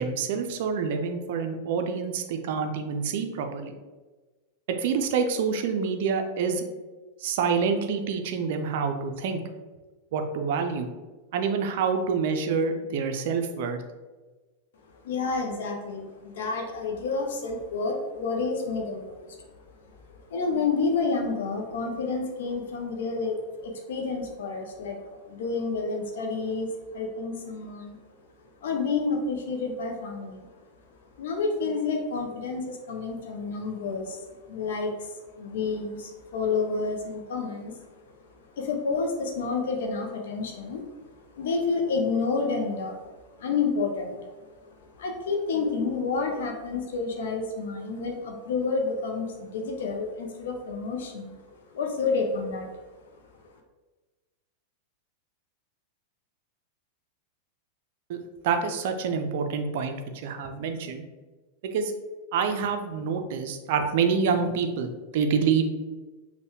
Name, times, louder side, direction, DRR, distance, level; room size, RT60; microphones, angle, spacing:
voice 1, 0.0-3.7 4.8-6.6 7.2-9.4 10.1-10.9 11.3-13.8 58.1-58.2 58.4-61.0 61.6-61.9 62.3-65.7, right 5 dB, 50° right, 6 dB, 0.4 m, -27 dB
voice 2, 15.0-19.5 20.1-28.0 28.6-30.5 31.2-37.9 38.5-41.1 41.3-43.1 43.4-44.5 44.8-51.4 51.7-52.7, left 4 dB, 60° left, 2 dB, 0.5 m, -29 dB
5.3 x 2.2 x 2.9 m, 1.3 s
figure-of-eight pair, 90°, 0 cm